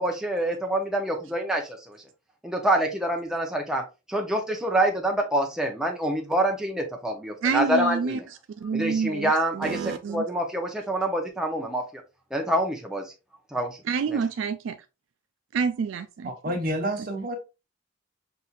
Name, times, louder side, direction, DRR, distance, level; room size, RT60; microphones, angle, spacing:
voice 1, 0.0-2.0 2.4-3.8 4.1-8.2 8.7-12.0 12.3-13.1 13.5-13.8 14.1-14.2, right 1 dB, 5° right, 0.7 m, -26 dB
voice 2, 7.4-10.3 13.8-14.8 15.5-16.3, right 6 dB, 70° right, 0.3 m, -28 dB
voice 3, 16.2-17.4, right 1 dB, 45° right, 1.1 m, -29 dB
5.7 x 2.7 x 2.4 m
head